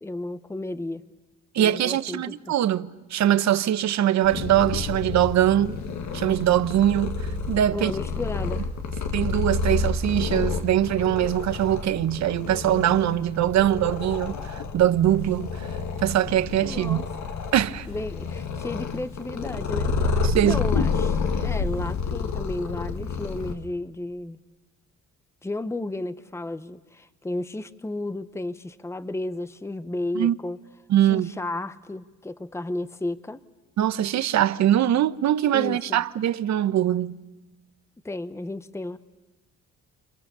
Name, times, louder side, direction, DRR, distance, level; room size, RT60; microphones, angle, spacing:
voice 1, 0.0-1.0 1.6-2.3 7.7-8.7 16.6-17.0 17.9-24.4 25.4-30.6 31.0-33.4 35.5-36.0 38.0-39.0, left 2 dB, 10° left, 0.9 m, -33 dB
voice 2, 1.5-5.8 6.1-7.9 9.1-15.5 16.0-17.1 17.5-17.9 20.2-20.6 30.1-30.3 30.9-31.3 33.8-37.1, right 12 dB, 65° right, 0.9 m, -22 dB
Purr, 4.2-23.5, left 4 dB, 65° left, 1.9 m, -29 dB
29.5 x 27.0 x 6.8 m
cardioid pair, 90°, 30 cm